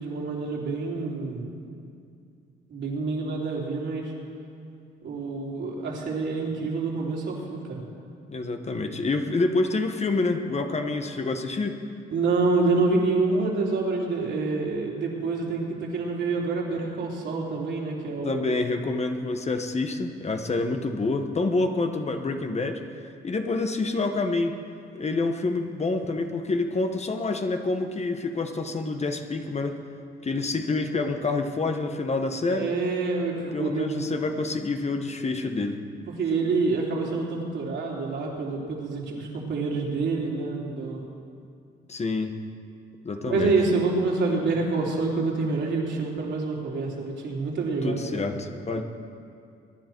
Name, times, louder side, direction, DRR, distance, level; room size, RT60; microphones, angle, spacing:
voice 1, 0.0-1.7 2.7-4.1 5.0-7.8 12.1-18.6 32.5-34.1 36.1-41.0 43.3-48.3, right 3 dB, 65° right, -3 dB, 3.4 m, -27 dB
voice 2, 8.3-11.8 18.2-22.8 23.2-24.6 24.9-29.7 30.2-32.7 33.5-35.8 41.9-42.3 43.0-43.5 47.8-48.8, left 3 dB, 35° left, 5 dB, 1.2 m, -27 dB
22.5 x 10.5 x 4.6 m, 2.4 s
cardioid pair, 90°, 20 cm